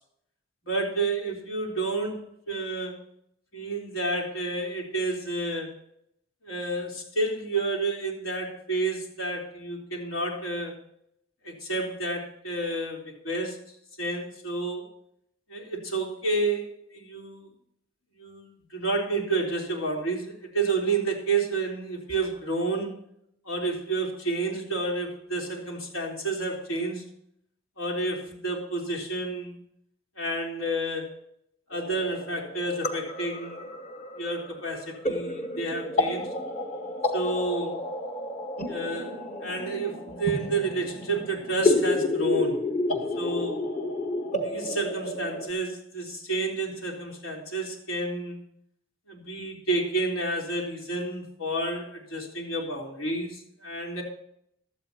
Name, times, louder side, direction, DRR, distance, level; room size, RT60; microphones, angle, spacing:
voice 1, 0.7-2.2 2.5-3.0 3.5-5.7 6.4-10.8 11.4-13.6 14.0-14.9 15.5-17.5 18.2-22.9 23.5-27.1 27.8-29.5 30.2-31.1 31.7-33.7 34.2-36.3 37.1-37.8 38.7-42.6 43.2-43.6 44.4-48.4 49.1-54.0, right 2 dB, 85° left, -1 dB, 3.7 m, -30 dB
sound 1, 31.7-45.5, left 2 dB, 35° left, 1.1 m, -30 dB
16.0 x 12.5 x 2.9 m, 0.71 s
head